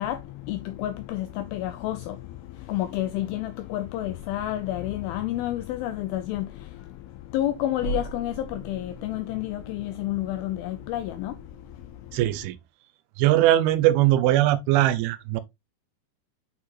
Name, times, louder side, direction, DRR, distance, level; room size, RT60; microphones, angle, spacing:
voice 1, 0.0-12.3, left 13 dB, 85° left, 2.2 m, -30 dB
sound 1, 7.8-12.5, right 2 dB, 20° left, 1.1 m, -40 dB
voice 2, 12.1-12.6 13.2-15.4, right 14 dB, 80° right, 2.2 m, -20 dB
8.7 x 4.6 x 2.4 m
omnidirectional pair, 4.8 m